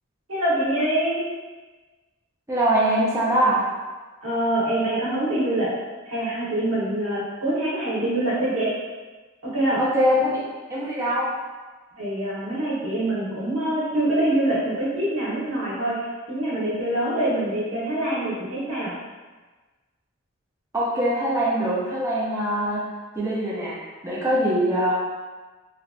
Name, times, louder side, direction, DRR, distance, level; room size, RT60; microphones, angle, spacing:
voice 1, 0.3-1.2 4.2-5.7 6.0-8.7 9.4-9.8 12.0-18.9, right 1 dB, 80° right, -7 dB, 1.1 m, -25 dB
voice 2, 2.5-3.6 9.8-11.3 20.7-22.8 23.1-23.8 24.0-24.9, equal, 15° right, -7 dB, 0.4 m, -23 dB
3.2 x 2.5 x 2.4 m, 1.3 s
head